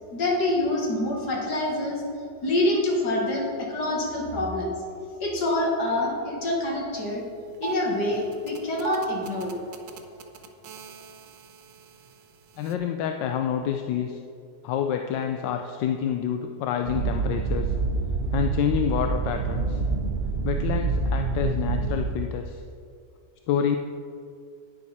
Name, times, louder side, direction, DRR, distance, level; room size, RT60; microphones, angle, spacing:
voice 1, 0.1-2.0 2.4-4.7 5.2-7.2 7.6-9.5 10.1-10.2, left 1 dB, 65° left, -1 dB, 2.5 m, -26 dB
sound 1, 7.0-7.1 7.4-12.8, right 7 dB, 90° right, 1.5 m, -39 dB
voice 2, 12.6-14.2 14.6-17.7 18.3-19.8 20.4-22.6 23.5-23.8, left 9 dB, 85° left, 5 dB, 1.3 m, -28 dB
sound 2, 16.9-22.1, right 4 dB, 45° right, 0.9 m, -26 dB
10.5 x 9.8 x 4.2 m, 2.4 s
omnidirectional pair, 1.9 m